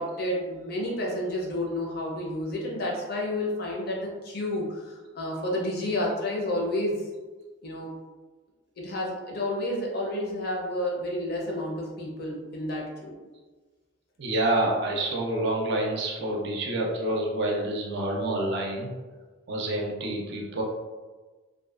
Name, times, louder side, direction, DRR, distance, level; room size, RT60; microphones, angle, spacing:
voice 1, 0.0-7.0 7.6-7.9 8.8-13.1, left 1 dB, 50° left, -2 dB, 0.5 m, -30 dB
voice 2, 14.2-18.9 19.5-20.6, right 1 dB, 55° right, -1 dB, 0.4 m, -28 dB
2.5 x 2.2 x 2.3 m, 1.3 s
head